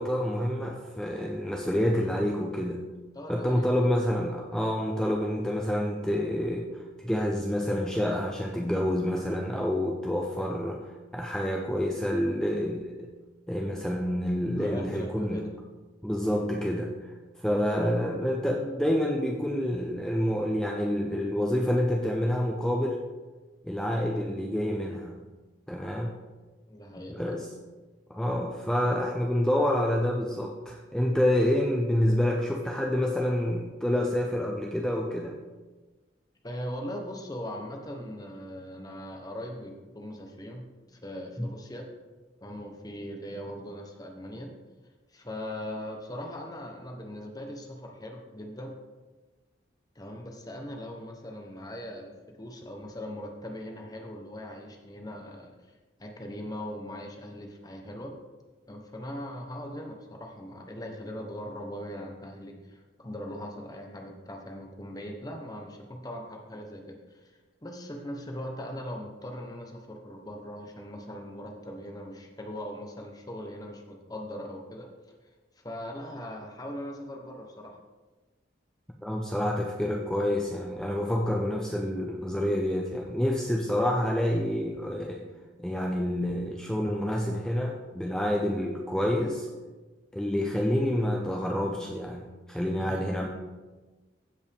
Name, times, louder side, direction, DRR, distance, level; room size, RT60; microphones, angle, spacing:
voice 1, 0.0-2.8 3.3-6.7 7.0-10.9 11.1-13.1 13.5-15.5 16.0-17.1 17.4-23.0 23.6-25.2 25.7-26.1 27.1-27.5 28.1-35.3 41.4-41.5 79.0-85.2 85.6-89.5 90.1-93.3, left 1 dB, 5° left, 0 dB, 0.6 m, -28 dB
voice 2, 3.1-3.9 14.6-15.5 17.5-17.6 26.7-27.3 36.4-41.9 42.4-44.5 45.1-48.7 49.9-55.5 56.0-58.1 58.7-67.3 67.6-74.9 75.6-77.8 92.7-93.1, equal, 20° left, 2 dB, 1.0 m, -40 dB
15.0 x 5.3 x 3.6 m, 1.3 s
head